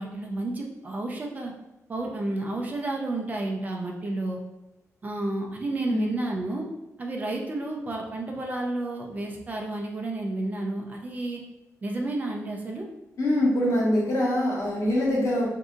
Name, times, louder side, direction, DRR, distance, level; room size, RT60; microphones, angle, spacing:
voice 1, 0.0-1.5 1.9-4.4 5.0-6.6 7.0-11.4 11.8-12.9, right 2 dB, 30° right, 1 dB, 0.5 m, -31 dB
voice 2, 13.2-15.5, left 1 dB, 75° left, -5 dB, 1.3 m, -23 dB
5.0 x 2.7 x 2.4 m, 0.97 s
wide cardioid pair, 180°, 6 cm